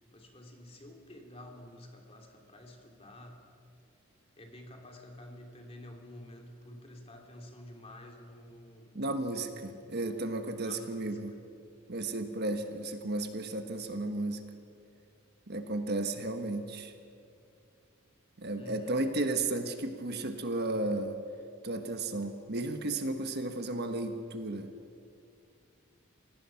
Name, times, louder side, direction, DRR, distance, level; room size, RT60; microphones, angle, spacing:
voice 1, 0.1-3.4 4.4-9.0 10.2-10.3 10.6-11.2 18.6-19.2, left 1 dB, 30° left, 2 dB, 2.8 m, -50 dB
voice 2, 8.9-11.3 11.9-14.4 15.5-16.9 18.4-21.2 21.6-24.7, right 2 dB, 50° right, 7 dB, 1.3 m, -34 dB
27.5 x 17.5 x 5.8 m, 2.4 s
head